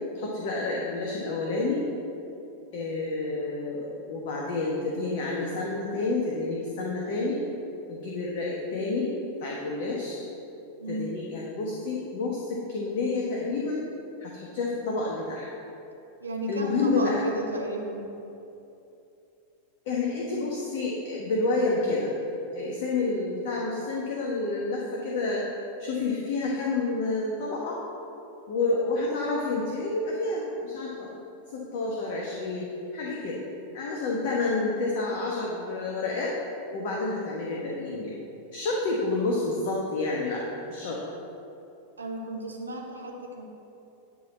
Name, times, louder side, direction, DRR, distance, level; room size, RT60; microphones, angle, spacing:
voice 1, 0.1-1.8 2.7-7.4 7.9-9.1 9.4-10.2 10.9-13.9 14.2-15.5 16.5-17.2 19.9-22.1 22.5-25.4 25.8-27.8 28.5-31.1 31.5-32.7 32.9-33.4 33.7-36.3 36.7-38.2 38.5-41.0, left 3 dB, 50° left, -3 dB, 1.2 m, -29 dB
voice 2, 10.8-11.1 16.2-18.1 42.0-43.4, right 1 dB, 75° right, 0 dB, 1.2 m, -33 dB
11.0 x 4.0 x 7.3 m, 2.9 s
figure-of-eight pair, 90°, 0 cm